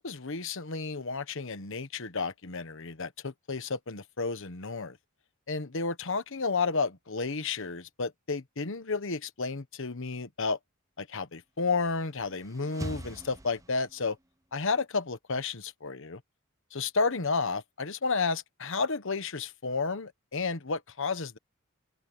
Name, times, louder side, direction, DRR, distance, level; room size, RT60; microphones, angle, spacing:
voice 1, 0.0-5.0 5.5-10.6 11.0-14.2 14.5-16.2 16.7-21.4, left 4 dB, 65° left, 1.3 m, -32 dB
sound 1, 11.8-14.2, right 1 dB, 15° right, 0.9 m, -43 dB
head